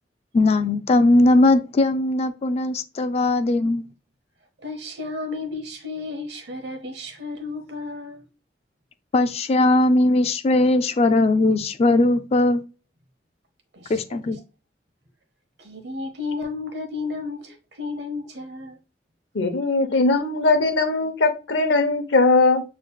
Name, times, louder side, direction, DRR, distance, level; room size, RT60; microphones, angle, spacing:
voice 1, 0.3-3.9 9.1-12.6 13.9-14.4, left 2 dB, 35° left, 0.4 m, -19 dB
voice 2, 4.6-8.2 13.7-13.9 15.6-18.8, left 3 dB, 65° right, 1.1 m, -32 dB
voice 3, 19.3-22.6, left 3 dB, 80° left, 0.7 m, -20 dB
6.6 x 3.1 x 2.3 m
head